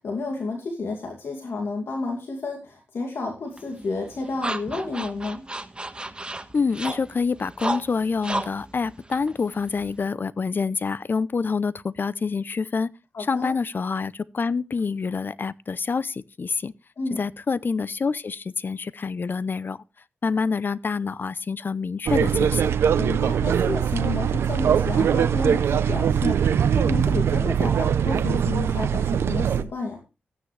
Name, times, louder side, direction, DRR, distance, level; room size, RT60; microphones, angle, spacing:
voice 1, 0.0-5.4 13.1-13.5 17.0-17.2 23.0-30.0, left 3 dB, 75° left, 2.5 m, -31 dB
sound 1, 3.6-10.1, right 2 dB, 25° right, 1.5 m, -34 dB
voice 2, 6.5-12.9 13.3-16.7 17.2-19.8 20.2-22.8, left 5 dB, 55° left, 0.6 m, -27 dB
sound 2, 22.1-29.6, right 8 dB, 90° right, 0.7 m, -22 dB
14.0 x 9.5 x 3.3 m
cardioid pair, 55°, 4 cm